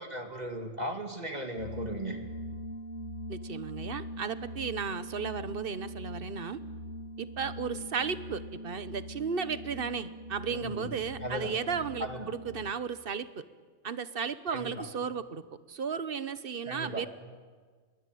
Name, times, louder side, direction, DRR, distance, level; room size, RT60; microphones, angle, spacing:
voice 1, 0.0-2.2 10.5-10.9 11.2-11.5 12.0-12.3 14.5-14.8 16.7-17.0, right 1 dB, 35° right, 4 dB, 2.6 m, -37 dB
sound 1, 1.6-12.7, equal, 75° left, 1.6 m, -42 dB
voice 2, 3.3-6.6 7.2-13.4 13.8-15.4 15.7-17.1, right 6 dB, 50° right, 14 dB, 1.1 m, -34 dB
26.0 x 22.0 x 9.2 m, 1.5 s
omnidirectional pair, 1.2 m